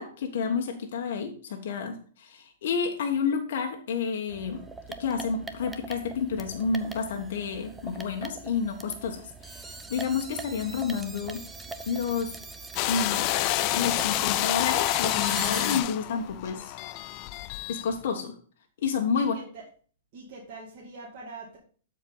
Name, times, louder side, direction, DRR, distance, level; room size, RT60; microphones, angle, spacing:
voice 1, 0.0-4.6 5.0-11.4 11.9-12.3 12.9-13.3 13.7-16.7 17.7-18.3 18.8-19.3, left 6 dB, 60° left, 3 dB, 1.3 m, -30 dB
sound 1, 4.3-15.8, right 3 dB, 10° right, 0.6 m, -41 dB
sound 2, 12.8-17.9, left 17 dB, 35° left, 0.3 m, -28 dB
voice 2, 19.1-19.6 20.1-21.6, right 3 dB, 40° right, -4 dB, 2.3 m, -43 dB
12.5 x 4.6 x 3.9 m, 0.43 s
hypercardioid pair, 160°, 0 cm